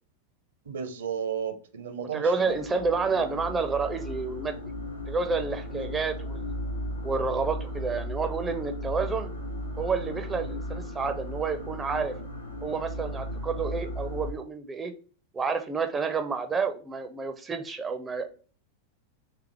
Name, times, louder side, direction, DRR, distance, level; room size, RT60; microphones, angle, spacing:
voice 1, 0.7-2.5 5.7-5.9, right 7 dB, 65° right, 0.7 m, -34 dB
voice 2, 2.1-4.7 5.1-6.5 7.0-9.3 9.8-12.1 12.6-14.9 15.3-18.3, right 4 dB, 15° right, 0.5 m, -29 dB
sound 1, 2.4-14.3, left 1 dB, 85° left, 0.8 m, -36 dB
3.5 x 3.4 x 4.4 m
figure-of-eight pair, 90°, 0 cm